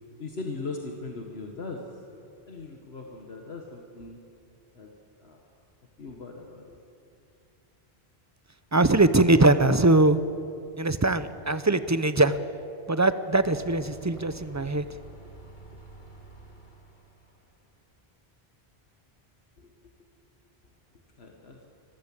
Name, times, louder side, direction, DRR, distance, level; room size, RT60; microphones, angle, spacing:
voice 1, 0.2-1.9 2.5-4.2 4.7-4.9 5.2-5.4 6.0-6.8 19.6-19.7 21.2-21.7, left 3 dB, 75° left, 2 dB, 1.9 m, -39 dB
voice 2, 8.7-10.2 10.8-12.4 12.9-14.9, right 2 dB, 20° right, 13 dB, 0.6 m, -21 dB
sound 1, 13.3-17.6, right 2 dB, 45° left, 2.8 m, -49 dB
25.0 x 15.0 x 8.7 m, 2.6 s
omnidirectional pair, 1.1 m